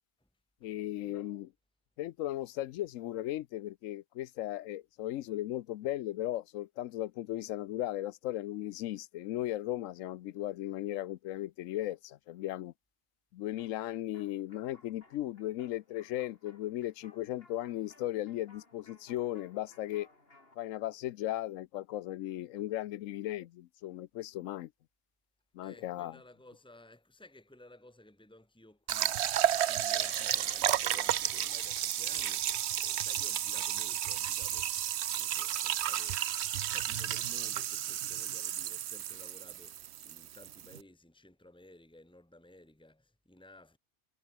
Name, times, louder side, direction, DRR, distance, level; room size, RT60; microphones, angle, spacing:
voice 1, 0.6-1.5 2.0-12.7 13.3-20.1 20.6-24.7 25.5-26.2, left 14 dB, 90° left, 1.0 m, -37 dB
sound 1, 13.6-20.6, left 2 dB, 50° left, 4.0 m, -62 dB
voice 2, 25.6-43.8, left 1 dB, 5° left, 2.5 m, -56 dB
sound 2, 28.9-40.8, right 11 dB, 65° right, 0.9 m, -32 dB
omnidirectional pair, 1.3 m